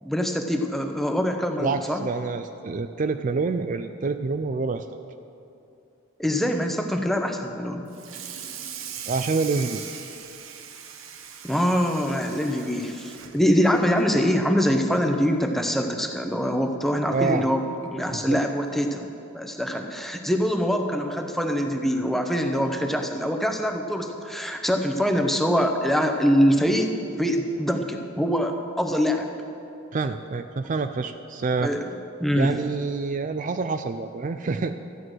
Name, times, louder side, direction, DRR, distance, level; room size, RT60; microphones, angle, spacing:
voice 1, 0.0-2.0 6.2-7.9 11.4-19.1 19.3-26.9 27.2-29.3 31.6-31.9 32.2-32.5, equal, ahead, 4 dB, 0.8 m, -24 dB
voice 2, 1.6-4.9 9.1-9.8 17.1-17.4 18.1-18.4 29.9-31.7 32.4-34.8, right 4 dB, 40° right, 8 dB, 0.4 m, -27 dB
Water tap faucet / Sink (filling or washing), 7.9-14.5 14.9-15.2 15.5-15.6 16.0-16.1 17.3-17.4 17.8-18.0, right 8 dB, 85° right, 1.0 m, -40 dB
13.0 x 9.4 x 6.2 m, 2.7 s
head